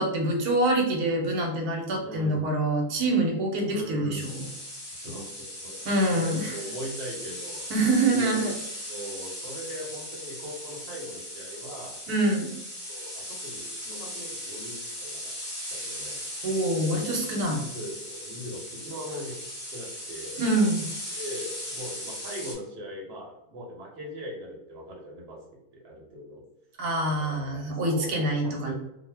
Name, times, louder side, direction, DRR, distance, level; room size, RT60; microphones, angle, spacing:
voice 1, 0.0-4.5 5.8-6.6 7.7-8.5 12.1-12.5 16.4-17.6 20.4-20.9 26.8-28.7, right 2 dB, 85° right, 1 dB, 1.2 m, -25 dB
voice 2, 2.0-2.5 3.6-4.3 4.9-7.6 8.1-8.4 8.9-12.0 12.9-15.3 15.7-16.2 16.9-17.2 17.4-19.4 19.7-20.4 21.1-25.4 25.7-26.4 27.1-28.7, equal, 50° right, -2 dB, 0.9 m, -40 dB
sound 1, 4.1-22.5, left 1 dB, 20° left, 1.2 m, -38 dB
2.6 x 2.1 x 3.2 m, 0.84 s
omnidirectional pair, 1.6 m